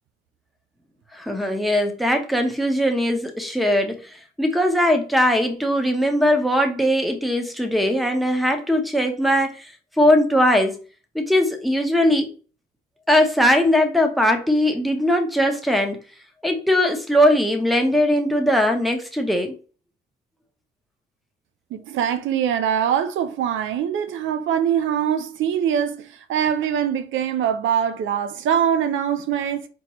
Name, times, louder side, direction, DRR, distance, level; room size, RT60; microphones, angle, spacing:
voice 1, 1.1-10.8 11.1-12.3 13.1-16.0 16.4-19.6, equal, ahead, 0.9 m, -20 dB
voice 2, 21.7-29.7, right 9 dB, 80° right, 0.5 m, -23 dB
4.4 x 2.9 x 3.0 m
cardioid pair, 90°, 20 cm